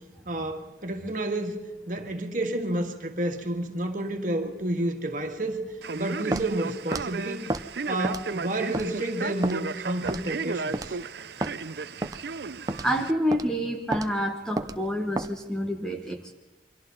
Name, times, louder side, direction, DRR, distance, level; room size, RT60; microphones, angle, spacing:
voice 1, 0.3-5.6 5.9-7.5 7.9-11.0, right 1 dB, 45° right, 4 dB, 2.1 m, -30 dB
Male speech man speaking, 5.8-13.1, right 4 dB, 65° right, 0.6 m, -34 dB
Walk footsteps, 6.3-6.5 6.9-7.1 7.5-7.7 8.0-8.3 8.7-8.9 9.4-9.6 10.1-10.3 10.7-10.9 11.4-11.5 12.0-12.2 12.7-12.9 13.3-13.5 13.9-14.1 14.6-14.8 15.2-15.3, right 1 dB, 20° right, 0.6 m, -30 dB
voice 2, 12.8-16.3, equal, 5° left, 3 dB, 1.2 m, -28 dB
28.5 x 23.5 x 3.9 m, 1.1 s
head